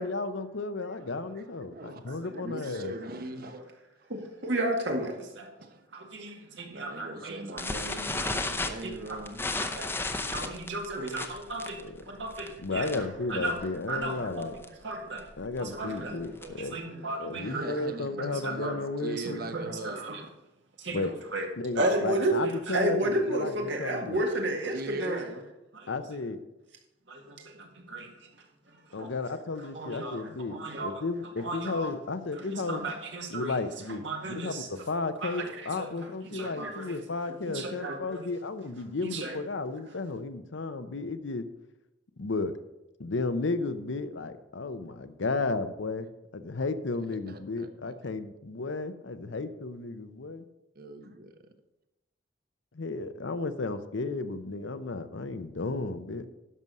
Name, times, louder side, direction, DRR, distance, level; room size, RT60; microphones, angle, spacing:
voice 1, 0.0-2.9 12.6-14.5 15.4-16.8 17.2-19.4 20.9-21.1 21.6-24.2 25.9-26.4 28.9-32.8 33.3-34.0 34.3-41.4 42.2-42.5 43.0-46.1 46.3-50.4 52.7-56.3, left 3 dB, 75° left, 11 dB, 0.7 m, -33 dB
voice 2, 1.7-3.6 5.6-5.8 6.5-9.5 12.9-13.1 17.4-20.0 24.7-25.3 36.3-36.7 47.1-47.9 50.7-51.3, right 2 dB, 50° right, 7 dB, 1.0 m, -41 dB
voice 3, 4.1-5.5 5.9-7.6 8.2-8.3 8.8-9.2 9.5-9.9 10.3-13.6 13.9-15.3 15.6-17.7 18.2-18.7 19.2-20.2 20.8-21.0 21.3-21.5 21.8-25.4 25.7-25.9 27.1-28.1 28.9-29.1 29.7-31.0 31.4-31.9 32.3-33.6 33.9-34.8 35.2-35.9 36.2-37.0 37.3-38.2 39.0-39.4, right 1 dB, 70° right, 2 dB, 1.8 m, -33 dB
sound 1, 7.6-13.2 13.5-13.7 14.0-14.1 14.4-14.7 15.2-16.7, left 2 dB, 10° left, 0.7 m, -34 dB
11.0 x 6.3 x 5.4 m, 0.95 s
head